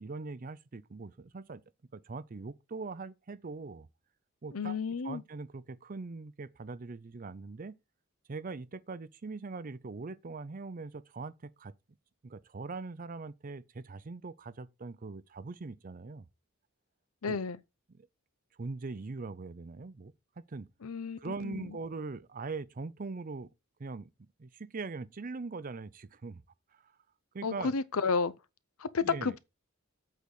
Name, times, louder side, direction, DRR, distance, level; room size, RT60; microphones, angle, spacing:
voice 1, 0.0-1.6 1.9-3.9 4.4-4.8 5.0-7.8 8.3-11.7 12.2-16.3 17.3-17.4 17.9-18.1 18.6-20.7 21.2-23.5 23.8-26.4 26.7-27.0 27.3-27.7 29.0-29.4, right 3 dB, 40° right, 0.5 m, -41 dB
voice 2, 4.5-5.2 17.2-17.6 20.8-21.7 27.4-28.3 28.8-29.4, left 5 dB, 80° left, 0.7 m, -32 dB
8.3 x 4.0 x 6.3 m
head